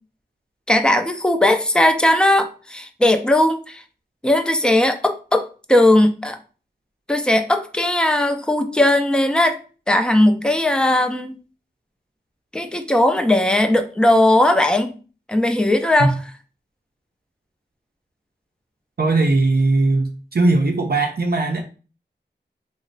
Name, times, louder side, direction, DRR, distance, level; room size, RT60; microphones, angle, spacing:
voice 1, 0.7-3.8 4.2-6.4 7.1-9.6 9.9-11.4 12.5-14.9 15.3-16.2, left 1 dB, 5° left, 0.4 m, -18 dB
voice 2, 19.0-21.6, right 2 dB, 60° right, 0.5 m, -19 dB
3.1 x 2.0 x 3.8 m
wide cardioid pair, 55°, 18 cm